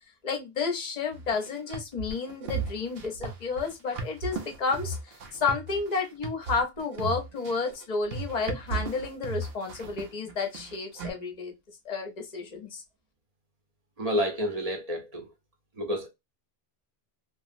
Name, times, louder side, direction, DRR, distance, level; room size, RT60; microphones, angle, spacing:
voice 1, 0.2-11.5 11.8-12.8, left 4 dB, 45° left, 0.7 m, -31 dB
sound 1, 1.1-11.1, right 4 dB, 75° right, 0.8 m, -36 dB
voice 2, 14.0-15.3 15.8-16.1, equal, 40° right, 0.7 m, -29 dB
2.9 x 2.4 x 2.5 m
omnidirectional pair, 1.0 m